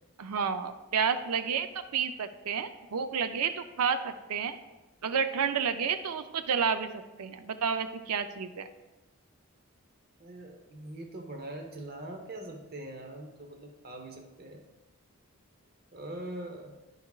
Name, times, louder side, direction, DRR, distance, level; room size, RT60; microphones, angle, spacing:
voice 1, 0.2-1.7 1.9-4.6 5.0-8.7, right 6 dB, 90° right, 10 dB, 0.5 m, -30 dB
voice 2, 10.2-14.6 15.9-16.7, right 1 dB, 45° right, 3 dB, 0.7 m, -42 dB
9.2 x 5.8 x 2.4 m, 1.1 s
head